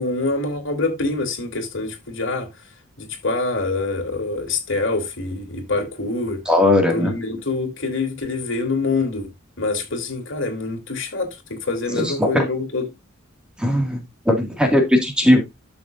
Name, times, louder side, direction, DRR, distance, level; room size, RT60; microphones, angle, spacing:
voice 1, 0.0-2.5 3.0-6.4 6.9-9.3 9.6-12.8, left 3 dB, 70° left, 3.1 m, -25 dB
voice 2, 6.5-7.1 11.9-12.5 13.6-15.4, left 1 dB, 5° right, 2.1 m, -18 dB
12.0 x 6.9 x 2.6 m
head